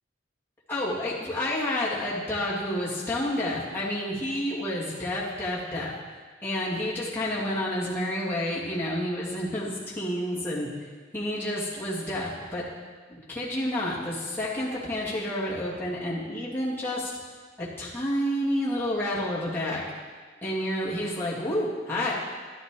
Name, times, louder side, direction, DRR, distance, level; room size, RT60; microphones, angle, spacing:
voice 1, 0.7-5.9 6.4-10.7 11.1-12.6 13.1-17.1 17.6-19.8 20.4-22.1, left 1 dB, 10° left, -8 dB, 2.3 m, -29 dB
12.0 x 11.5 x 3.8 m, 1.4 s
head